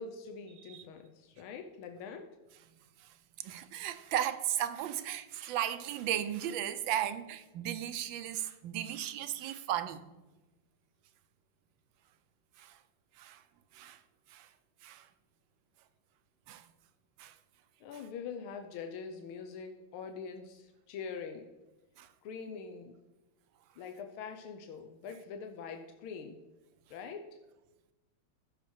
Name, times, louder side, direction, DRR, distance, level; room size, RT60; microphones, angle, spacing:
voice 1, 0.0-2.3 17.8-21.5 22.2-23.0 23.8-26.5 26.9-27.3, left 5 dB, 85° left, 1.6 m, -44 dB
voice 2, 3.4-10.0 12.6-12.8 13.2-13.4 13.7-14.0 14.3-14.5 14.8-15.1 16.5-16.6 17.2-17.3 22.0-22.1, right 11 dB, 75° right, 1.3 m, -35 dB
15.0 x 5.9 x 4.4 m
omnidirectional pair, 2.3 m